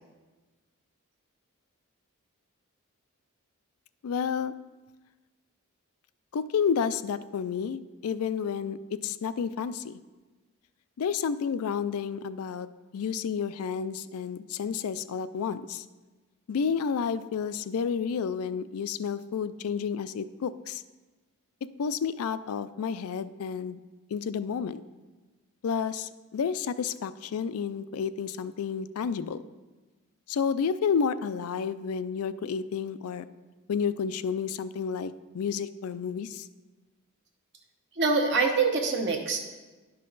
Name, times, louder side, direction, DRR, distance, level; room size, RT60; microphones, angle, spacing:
voice 1, 4.0-4.5 6.3-10.0 11.0-12.7 12.9-15.9 16.5-20.8 21.8-23.8 24.1-24.8 25.6-29.4 30.3-33.3 33.7-36.5, left 6 dB, 75° left, 14 dB, 0.4 m, -30 dB
voice 2, 38.0-39.4, right 4 dB, 50° right, 2 dB, 0.9 m, -25 dB
11.0 x 5.5 x 3.9 m, 1.3 s
head